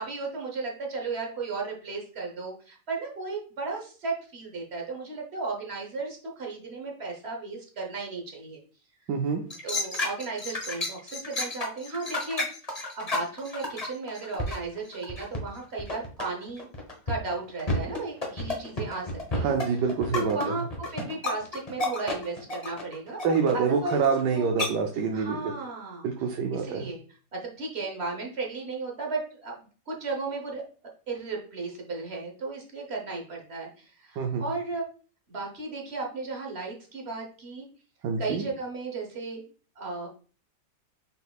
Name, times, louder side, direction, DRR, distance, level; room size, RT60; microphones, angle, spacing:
voice 1, 0.0-8.6 9.6-12.5 12.7-16.7 17.1-19.5 20.2-24.0 24.3-24.6 25.1-26.1 26.5-27.0 27.3-30.6 31.1-34.8 35.3-37.7 38.2-39.4 39.8-40.1, right 3 dB, 45° right, 0 dB, 1.1 m, -35 dB
voice 2, 9.1-9.4 19.4-20.5 23.2-25.4 26.0-26.9 34.2-34.4 38.0-38.4, right 5 dB, 80° right, 2 dB, 1.2 m, -26 dB
sound 1, 9.5-15.5 15.7-24.3 24.6-24.7, left 2 dB, 25° left, 0.9 m, -31 dB
5.4 x 4.0 x 2.3 m, 0.40 s
omnidirectional pair, 1.8 m